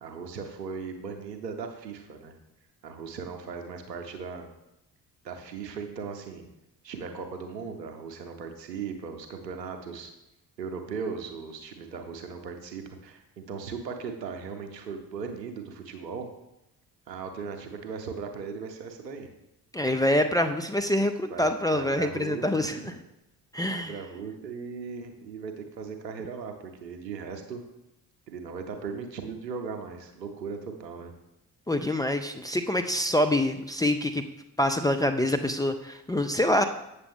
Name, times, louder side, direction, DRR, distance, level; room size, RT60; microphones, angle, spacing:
voice 1, 0.0-2.3 2.8-4.5 5.2-6.5 6.8-10.1 10.6-16.3 17.1-19.3 21.3-22.9 23.7-27.6 28.3-31.1, right 5 dB, 85° right, 5 dB, 0.8 m, -38 dB
voice 2, 19.7-22.9 23.5-23.9 31.7-34.3 34.6-36.6, left 1 dB, 10° left, 4 dB, 0.3 m, -26 dB
8.1 x 6.6 x 3.6 m, 0.89 s
figure-of-eight pair, 45°, 49 cm